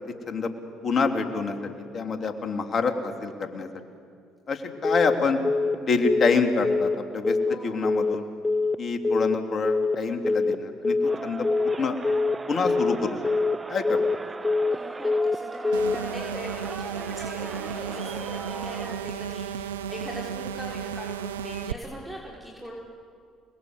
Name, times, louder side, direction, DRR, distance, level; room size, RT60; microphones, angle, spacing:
voice 1, 0.8-1.6 1.9-3.7 4.5-5.4 5.8-8.2 8.8-12.0 12.5-13.2 13.7-14.0, left 4 dB, 45° left, 5 dB, 3.4 m, -26 dB
Telephone, 4.8-5.2 5.4-5.8 6.0-6.4 6.6-7.0 7.2-7.6 7.8-8.2 8.4-8.8 9.0-9.4 9.6-10.0 10.2-10.6 10.8-11.2 11.4-11.8 12.0-12.4 12.6-13.0 13.2-13.6 13.8-14.2 14.4-14.8 15.0-15.4 15.6-16.0, left 3 dB, 20° left, 0.6 m, -24 dB
voice 2, 7.4-8.1 14.7-22.7, equal, 5° right, -4 dB, 5.9 m, -41 dB
Crowd, 11.0-19.1, right 3 dB, 25° right, 1.3 m, -38 dB
sound 1, 15.7-21.7, right 8 dB, 85° right, 0.6 m, -34 dB
28.5 x 21.0 x 8.2 m, 2.3 s
hypercardioid pair, 55°, 0 cm